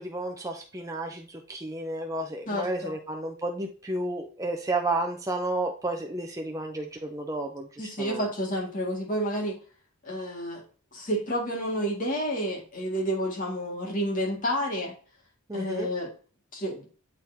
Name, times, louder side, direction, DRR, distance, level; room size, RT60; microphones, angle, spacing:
voice 1, 0.0-7.7 8.0-8.3 15.5-15.9, right 2 dB, 15° right, 2 dB, 0.6 m, -32 dB
voice 2, 2.5-3.0 7.8-9.6 10.0-10.6 10.9-14.9 15.5-16.1 16.5-16.8, equal, 35° left, -1 dB, 1.9 m, -30 dB
7.9 x 4.3 x 2.7 m, 0.38 s
head